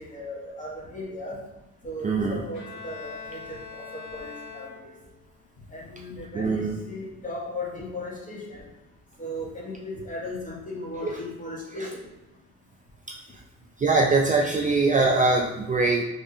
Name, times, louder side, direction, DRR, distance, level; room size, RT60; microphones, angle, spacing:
voice 1, 0.0-1.4 1.8-4.9 5.7-8.6 9.2-11.9, left 1 dB, 25° left, -4 dB, 1.4 m, -37 dB
voice 2, 2.0-2.4 6.3-6.8 11.0-11.1 13.1-13.2 13.8-16.0, right 3 dB, 25° right, 0 dB, 0.4 m, -22 dB
Bowed string instrument, 2.5-5.3, left 5 dB, 65° left, 1.2 m, -42 dB
3.5 x 2.5 x 4.2 m, 1.0 s
cardioid pair, 90°, 30 cm